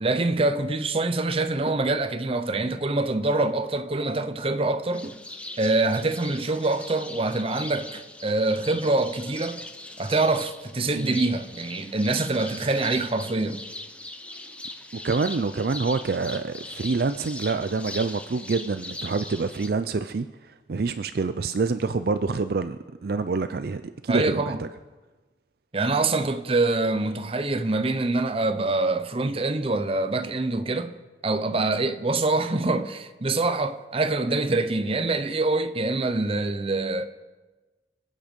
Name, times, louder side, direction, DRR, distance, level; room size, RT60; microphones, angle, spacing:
voice 1, 0.0-5.2 5.6-9.6 10.0-13.6 24.1-24.6 25.7-30.9 31.2-37.0, right 2 dB, 30° right, 0.8 m, -25 dB
sound 1, 4.9-19.7, left 2 dB, 5° left, 0.8 m, -40 dB
voice 2, 15.0-24.7, right 4 dB, 55° right, 0.4 m, -27 dB
26.5 x 8.8 x 5.3 m
head